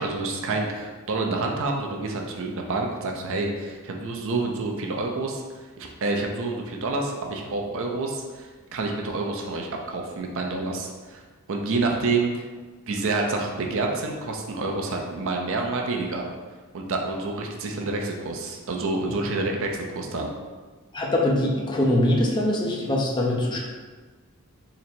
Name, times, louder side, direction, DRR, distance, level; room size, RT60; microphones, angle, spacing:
voice 1, 0.0-5.4 5.8-11.2 11.5-12.5 12.9-16.3 16.7-20.3, right 3 dB, 65° right, 1 dB, 0.5 m, -28 dB
voice 2, 20.9-23.6, left 1 dB, 20° left, -2 dB, 0.5 m, -23 dB
3.8 x 2.0 x 4.3 m, 1.4 s
head